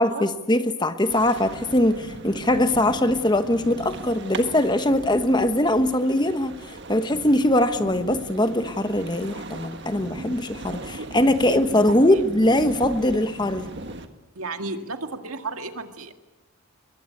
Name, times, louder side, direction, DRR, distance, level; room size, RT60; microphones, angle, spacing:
voice 1, 0.0-6.5 6.9-13.7, left 1 dB, 20° left, 9 dB, 1.1 m, -21 dB
sound 1, 1.1-14.1, right 2 dB, 55° right, 1.6 m, -38 dB
voice 2, 11.0-12.3 14.4-16.1, right 3 dB, 80° right, 6 dB, 2.0 m, -34 dB
23.0 x 21.5 x 8.5 m, 1.1 s
head